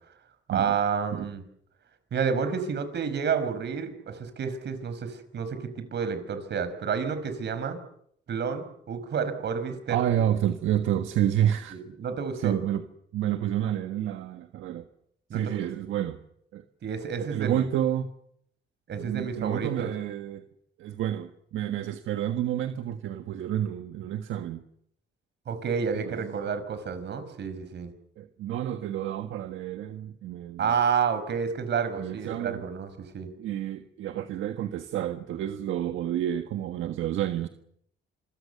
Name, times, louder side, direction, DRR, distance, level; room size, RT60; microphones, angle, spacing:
voice 1, 0.5-1.4 2.1-7.8 8.3-10.3 11.7-12.6 15.3-15.6 16.8-17.7 18.9-19.9 25.5-27.9 30.6-33.3, right 6 dB, 60° right, 11 dB, 5.3 m, -30 dB
voice 2, 9.9-11.8 12.4-12.8 13.1-14.8 15.3-16.2 16.5-16.6 17.2-18.1 18.9-20.4 20.8-24.6 26.0-26.3 28.2-30.7 32.0-32.6 33.4-37.5, right 11 dB, 80° right, 7 dB, 1.5 m, -29 dB
27.5 x 23.5 x 6.9 m, 0.70 s
cardioid pair, 90°, 20 cm